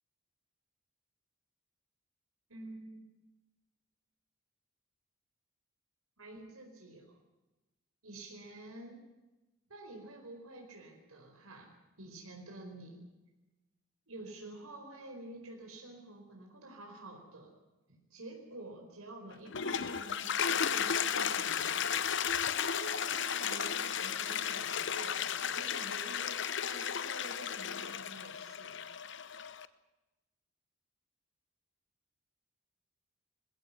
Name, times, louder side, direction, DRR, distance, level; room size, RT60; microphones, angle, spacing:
voice 1, 2.5-3.0 6.2-7.2 8.0-9.1 9.7-11.7 12.0-13.0 14.1-17.5 17.9-28.9, right 2 dB, 90° right, 1 dB, 4.7 m, -49 dB
Toilet flush, 19.3-29.7, left 7 dB, 55° left, 0.9 m, -34 dB
21.0 x 15.5 x 9.7 m, 1.0 s
head